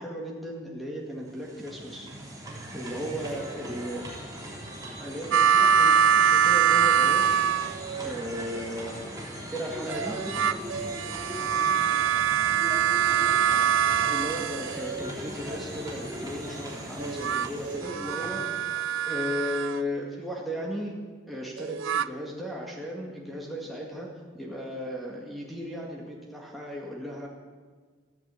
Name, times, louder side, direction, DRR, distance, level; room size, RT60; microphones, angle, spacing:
voice 1, 0.0-2.1 2.7-4.0 5.0-7.4 8.0-10.3 14.1-18.5 19.0-27.3, equal, ahead, -3 dB, 2.0 m, -36 dB
sound 1, 1.1-19.2, right 1 dB, 20° right, 3.3 m, -39 dB
voice 2, 2.9-4.1 7.8-8.4 11.3-14.2, equal, 25° left, -5 dB, 5.6 m, -48 dB
sound 2, 5.3-8.1 9.9-15.1 17.0-19.8 21.6-22.1, right 8 dB, 70° right, 0.4 m, -24 dB
sound 3, 10.6-17.8, right 2 dB, 35° right, 6.0 m, -52 dB
13.5 x 10.5 x 8.4 m, 1.5 s
head